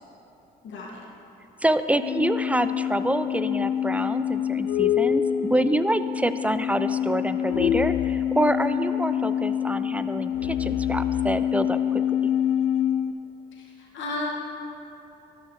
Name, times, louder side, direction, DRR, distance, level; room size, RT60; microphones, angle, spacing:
voice 1, 0.6-1.1 13.5-14.3, left 2 dB, 70° left, -3 dB, 1.8 m, -34 dB
voice 2, 1.6-12.0, right 1 dB, 5° right, 11 dB, 0.5 m, -26 dB
sound 1, 1.9-13.1, left 10 dB, 85° left, 0.5 m, -26 dB
12.5 x 11.5 x 3.2 m, 2.9 s
supercardioid pair, 60°, 20 cm